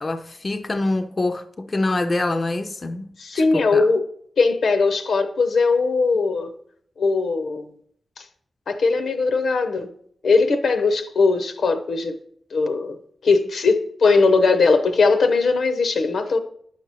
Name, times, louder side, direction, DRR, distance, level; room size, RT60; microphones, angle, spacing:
voice 1, 0.0-3.1 3.3-3.9, left 2 dB, 35° left, 0.4 m, -25 dB
voice 2, 3.2-4.0 4.4-6.5 7.0-7.7 8.2-8.3 8.7-9.9 10.2-12.2 12.5-13.0 13.2-16.4, left 4 dB, 80° left, 0.7 m, -19 dB
9.5 x 5.8 x 3.0 m
wide cardioid pair, 105°, 0 cm